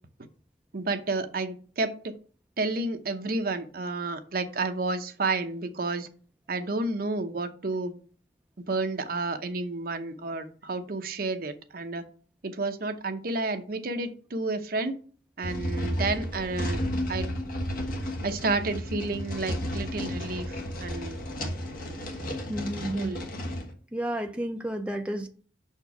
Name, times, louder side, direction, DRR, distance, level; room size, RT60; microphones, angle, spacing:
voice 1, 0.7-2.1 2.6-6.1 6.5-8.0 8.7-12.1 12.4-15.0 15.4-16.8 17.1-17.3 18.2-21.2 22.9-23.2, right 3 dB, 55° right, 7 dB, 0.7 m, -31 dB
sound 1, 15.4-23.7, equal, 50° left, 1.2 m, -33 dB
voice 2, 22.5-23.1 23.9-25.3, right 1 dB, 5° right, 4 dB, 0.5 m, -31 dB
5.9 x 4.4 x 5.8 m, 0.41 s
head